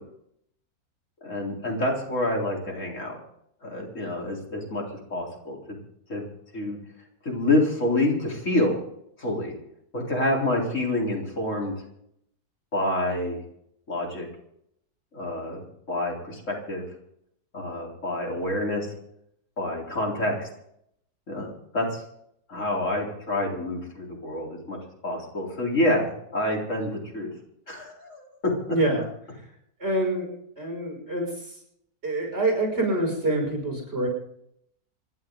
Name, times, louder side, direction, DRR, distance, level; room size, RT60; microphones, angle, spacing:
voice 1, 1.2-3.2 3.6-4.8 5.1-5.8 6.1-6.2 6.5-6.8 7.2-8.8 9.2-9.5 9.9-11.7 12.7-13.4 13.9-14.3 15.1-16.8 17.5-18.9 19.6-20.5 21.3-22.0 22.5-24.8 25.0-27.3 27.7-28.5, left 1 dB, 50° left, -1 dB, 4.3 m, -27 dB
voice 2, 28.7-29.0 29.8-30.3 30.6-31.3 32.0-34.1, right 1 dB, 40° right, 1 dB, 6.3 m, -25 dB
27.0 x 11.0 x 3.9 m, 0.73 s
omnidirectional pair, 1.6 m